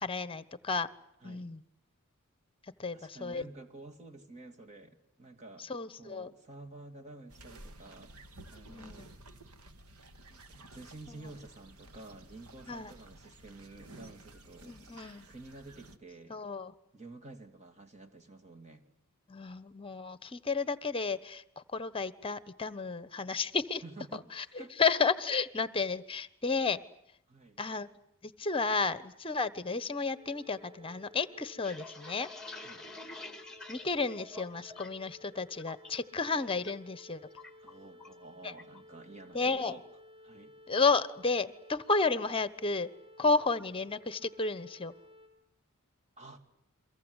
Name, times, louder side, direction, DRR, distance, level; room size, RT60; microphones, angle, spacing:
voice 1, 0.0-0.9 1.2-1.6 2.8-3.5 5.7-6.3 8.7-9.1 12.7-12.9 14.6-15.3 16.3-16.7 19.3-23.8 24.3-24.4 24.8-26.8 27.6-27.9 28.2-32.3 33.7-37.2 38.4-38.5 39.3-39.7 40.7-42.9 43.2-44.9, left 4 dB, 25° left, 15 dB, 1.1 m, -32 dB
voice 2, 2.9-5.7 6.0-8.2 8.5-9.2 10.3-14.8 15.3-16.4 16.9-18.9 23.8-24.8 27.3-27.6 32.6-32.9 37.6-39.9 40.2-40.6 46.2-46.4, right 2 dB, 35° right, 4 dB, 2.6 m, -50 dB
sound 1, 7.3-16.0, right 2 dB, 90° right, 1.7 m, -53 dB
sound 2, 30.1-45.3, left 1 dB, 60° right, 4.5 m, -56 dB
sound 3, 31.6-35.1 35.4-35.9 36.3-36.7 37.0-38.2 38.6-38.8 39.2-39.6, left 2 dB, 5° left, 2.4 m, -48 dB
30.0 x 23.5 x 8.1 m, 0.74 s
head